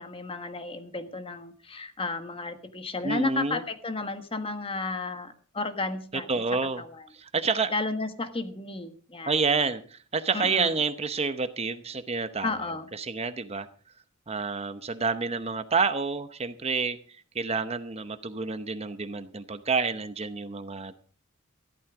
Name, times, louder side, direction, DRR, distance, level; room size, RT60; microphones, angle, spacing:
voice 1, 0.0-6.4 6.8-7.0 7.7-9.4 10.3-10.8 12.4-12.9, left 3 dB, 25° left, 8 dB, 1.5 m, -33 dB
voice 2, 3.0-3.6 6.1-6.8 7.1-7.7 9.3-13.7 14.3-17.0 17.3-20.9, right 4 dB, 30° right, 11 dB, 0.8 m, -29 dB
14.5 x 12.5 x 4.9 m, 0.42 s
head